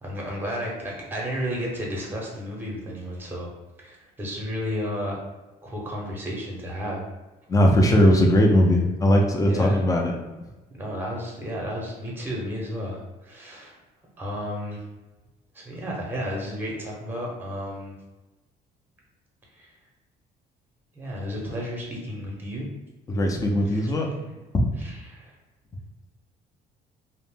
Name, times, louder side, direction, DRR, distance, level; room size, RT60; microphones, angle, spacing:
voice 1, 0.0-3.5 3.8-5.2 5.6-7.0 9.4-9.8 10.8-13.8 14.2-14.8 15.5-17.9 19.5-19.7 20.9-22.7 23.6-24.0 24.8-25.3, equal, 10° right, -2 dB, 0.8 m, -32 dB
voice 2, 7.5-10.1 23.1-24.1 24.5-24.7, equal, 20° left, 1 dB, 0.5 m, -19 dB
2.5 x 2.1 x 3.5 m, 1.1 s
cardioid pair, 110°, 17 cm